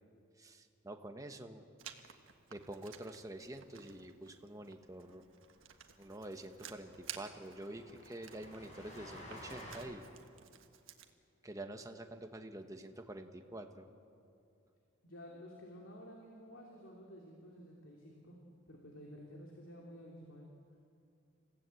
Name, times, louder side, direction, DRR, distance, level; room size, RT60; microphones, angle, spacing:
voice 1, 0.4-1.7 2.5-5.2 6.0-10.0 11.4-13.9, right 1 dB, 15° right, 5 dB, 1.1 m, -47 dB
Writing, 1.8-11.1, right 9 dB, 85° right, 1.4 m, -54 dB
Train, 5.2-5.3 5.6-5.7 6.0-6.1 6.4-9.8, left 1 dB, 35° left, 7.1 m, -53 dB
voice 2, 15.0-18.4 18.7-20.5, equal, 85° left, -1 dB, 2.9 m, -52 dB
27.5 x 16.0 x 8.3 m, 2.5 s
head